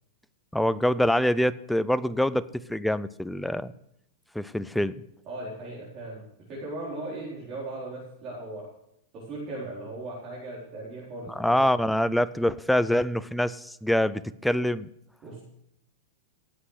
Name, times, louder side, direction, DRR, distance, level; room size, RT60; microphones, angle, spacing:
voice 1, 0.5-2.4 2.7-3.7 4.3-5.0 11.3-14.9, left 1 dB, ahead, 14 dB, 0.4 m, -25 dB
voice 2, 5.3-6.2 6.5-8.7 9.1-11.6 15.2-15.4, right 2 dB, 30° right, -7 dB, 4.4 m, -38 dB
17.0 x 8.2 x 6.5 m, 0.76 s
supercardioid pair, 160°, 0 cm